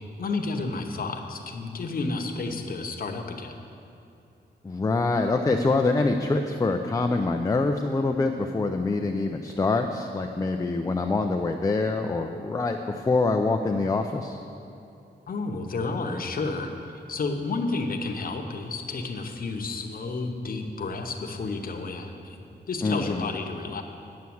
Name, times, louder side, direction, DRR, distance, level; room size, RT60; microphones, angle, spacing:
voice 1, 0.2-3.5 15.3-23.8, left 3 dB, 55° left, 3 dB, 0.9 m, -31 dB
voice 2, 4.6-14.4 22.8-23.3, left 3 dB, 20° left, 4 dB, 0.4 m, -25 dB
9.5 x 7.1 x 7.8 m, 2.8 s
wide cardioid pair, 155°, 18 cm